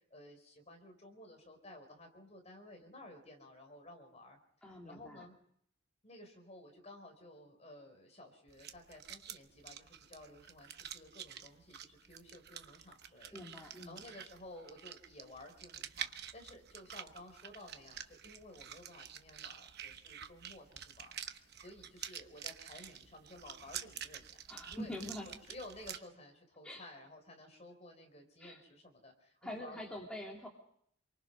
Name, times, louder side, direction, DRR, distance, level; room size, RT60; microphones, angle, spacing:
voice 1, 0.0-5.4 6.0-24.3 24.7-24.9 25.5-29.9, left 1 dB, 30° left, 4 dB, 4.3 m, -54 dB
voice 2, 4.6-5.3 13.3-14.0 24.5-25.3 26.6-26.8 28.4-28.6 29.4-30.5, left 1 dB, 5° left, -2 dB, 2.8 m, -45 dB
sound 1, 8.5-26.0, right 9 dB, 50° right, 1.0 m, -48 dB
27.0 x 23.5 x 5.5 m, 0.68 s
head